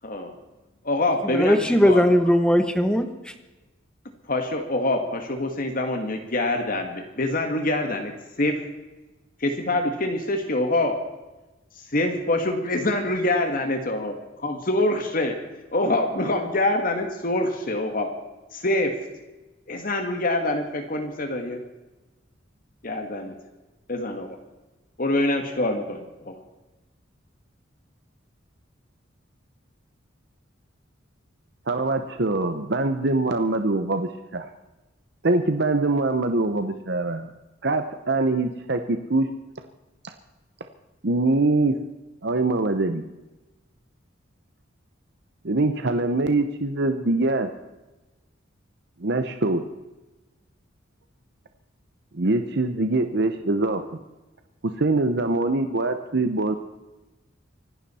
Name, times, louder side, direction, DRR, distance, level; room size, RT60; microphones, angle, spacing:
voice 1, 0.0-0.3 0.8-1.6 1.9-2.0 4.3-8.6 9.4-11.0 11.9-14.1 14.4-15.4 15.7-18.1 18.5-19.0 19.7-21.6 22.8-23.3 23.9-24.4 25.0-26.4, left 2 dB, 45° left, 5 dB, 1.7 m, -25 dB
voice 2, 1.2-3.3, equal, 5° left, 8 dB, 1.2 m, -19 dB
voice 3, 31.7-34.5 35.2-37.3 37.6-39.3 41.0-41.8 42.2-43.0 45.4-47.5 49.0-49.6 52.1-54.0 54.8-56.5, right 2 dB, 55° right, 7 dB, 0.9 m, -23 dB
25.5 x 11.5 x 4.3 m, 1.1 s
head